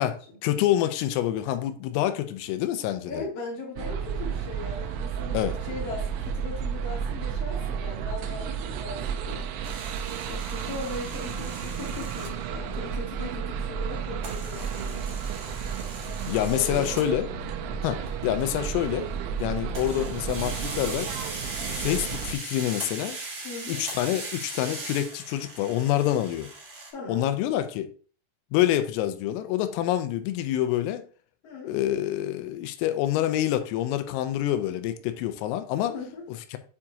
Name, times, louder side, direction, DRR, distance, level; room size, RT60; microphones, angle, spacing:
voice 1, 0.0-3.1 5.3-5.6 16.3-17.3 17.8-19.1 19.4-21.1 21.7-23.2 23.7-26.5 27.1-27.9 28.5-31.0 31.6-35.9 36.3-36.6, left 12 dB, 85° left, 3.2 m, -27 dB
voice 2, 3.1-9.5 10.3-15.1 16.4-16.9 17.2-17.4 23.4-23.8 26.9-27.2 31.4-31.7 35.9-36.3, left 3 dB, 65° left, 1.5 m, -38 dB
sound 1, 3.8-22.3, right 7 dB, 90° right, 3.5 m, -32 dB
sound 2, 9.6-12.3 14.2-17.1 18.1-18.5 18.8-19.4 19.7-26.9, right 3 dB, 75° right, 1.2 m, -39 dB
8.6 x 4.6 x 2.8 m
omnidirectional pair, 6.0 m